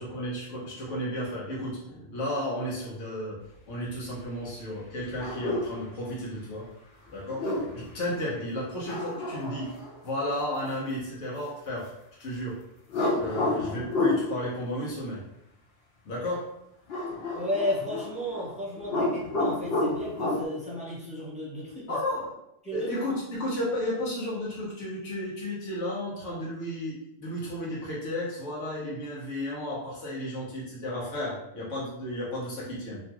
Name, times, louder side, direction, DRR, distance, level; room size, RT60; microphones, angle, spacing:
voice 1, 0.0-3.4 3.7-6.7 7.1-7.4 7.7-9.7 10.0-11.9 12.2-12.6 13.1-15.2 16.0-16.4 21.9-22.3 22.7-33.0, left 1 dB, 85° left, -6 dB, 1.3 m, -33 dB
sound 1, 5.2-5.8 7.2-7.9 8.8-10.0 12.9-14.3 16.9-18.5 18.8-20.4, left 2 dB, 60° left, 0.8 m, -29 dB
voice 2, 17.3-22.0 22.6-22.9, equal, 5° right, -7 dB, 0.8 m, -33 dB
3.1 x 2.3 x 2.9 m, 0.81 s
omnidirectional pair, 1.2 m